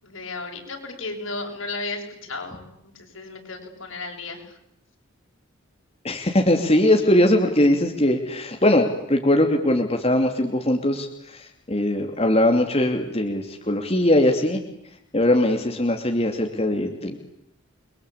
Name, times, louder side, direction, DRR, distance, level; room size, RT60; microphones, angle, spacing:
voice 1, 0.0-4.4 7.1-7.2, left 3 dB, 80° left, 2 dB, 7.7 m, -34 dB
voice 2, 6.0-11.1 11.3-14.6 15.1-17.2, left 1 dB, 30° left, 3 dB, 2.8 m, -20 dB
29.5 x 23.5 x 8.6 m, 0.77 s
head